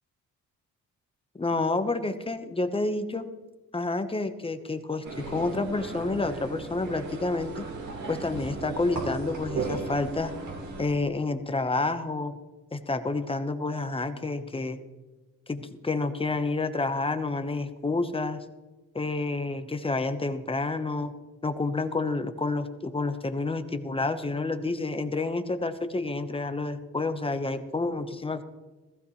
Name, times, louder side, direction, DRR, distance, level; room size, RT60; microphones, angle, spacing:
voice 1, 1.4-3.3 3.7-7.7 8.1-10.3 10.8-12.4 12.7-14.8 15.5-18.4 18.9-21.1 21.4-28.4, left 3 dB, 20° left, 9 dB, 1.1 m, -29 dB
sound 1, 5.0-10.9, right 3 dB, 70° right, 3.3 m, -36 dB
15.5 x 15.0 x 3.2 m, 1.2 s
cardioid pair, 90°, 30 cm